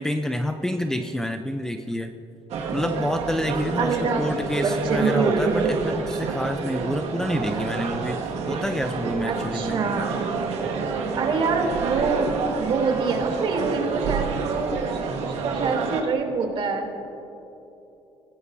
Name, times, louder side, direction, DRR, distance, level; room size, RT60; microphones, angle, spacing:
voice 1, 0.0-2.1 2.7-9.8, left 1 dB, 5° left, 6 dB, 0.6 m, -28 dB
sound 1, 2.5-16.0, right 5 dB, 80° right, 1.9 m, -29 dB
voice 2, 3.8-4.3 4.6-5.7 9.2-10.2 11.1-14.9 15.2-16.9, right 4 dB, 55° right, 1 dB, 3.1 m, -25 dB
28.0 x 17.5 x 2.7 m, 3.0 s
cardioid pair, 135°, 11 cm